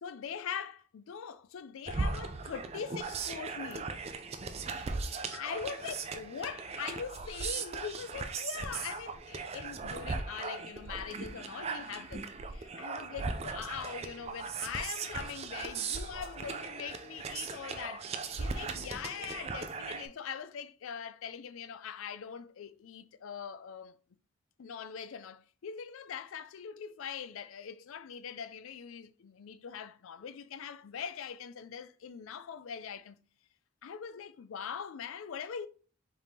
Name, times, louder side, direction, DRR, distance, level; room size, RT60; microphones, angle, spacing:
voice 1, 0.0-4.0 5.3-12.2 12.5-18.1 18.4-24.0 24.6-33.2 33.8-35.7, left 7 dB, 75° left, 0.4 m, -42 dB
sound 1, 1.9-20.1, right 4 dB, 30° right, 0.3 m, -38 dB
5.1 x 3.4 x 2.8 m
head